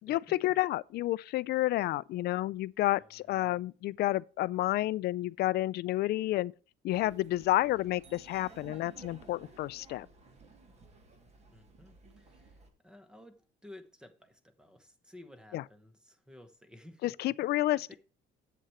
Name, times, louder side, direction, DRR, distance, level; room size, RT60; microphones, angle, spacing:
voice 1, 0.1-6.5 6.8-10.1 15.5-15.6 17.0-17.9, left 16 dB, 55° left, 0.4 m, -30 dB
voice 2, 3.0-3.6 11.5-17.4 17.7-18.0, left 1 dB, 5° right, 0.9 m, -55 dB
Laughter, 6.9-12.7, right 3 dB, 35° right, 1.6 m, -55 dB
sound 1, 8.0-9.4, right 4 dB, 80° right, 3.0 m, -66 dB
7.7 x 7.5 x 4.5 m
cardioid pair, 160°, 20 cm